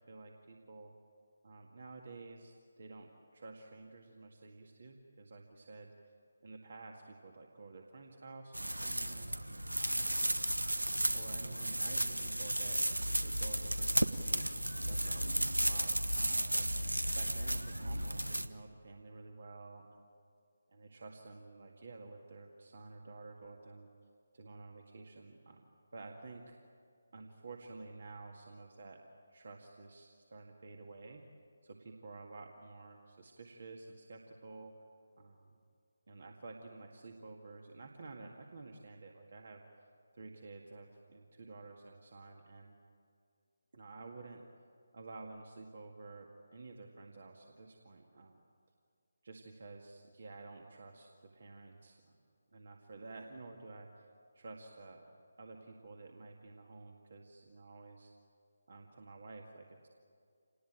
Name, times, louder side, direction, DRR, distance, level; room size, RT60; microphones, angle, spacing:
voice 1, 0.1-0.9 1.4-6.1 6.4-9.3 9.7-10.2 11.1-12.8 13.2-20.1 20.7-23.9 24.3-25.6 25.9-26.6 27.1-29.0 29.3-31.2 31.6-34.8 35.2-35.6 36.1-39.6 40.1-42.7 43.7-44.4 44.9-48.4 49.2-52.2 52.5-53.9 54.3-55.0 55.4-58.1 58.7-59.9, right 3 dB, 50° right, 2 dB, 2.0 m, -51 dB
sound 1, 8.5-18.5, right 1 dB, 80° right, 1.1 m, -34 dB
27.5 x 19.5 x 9.0 m, 2.3 s
figure-of-eight pair, 150°, 0 cm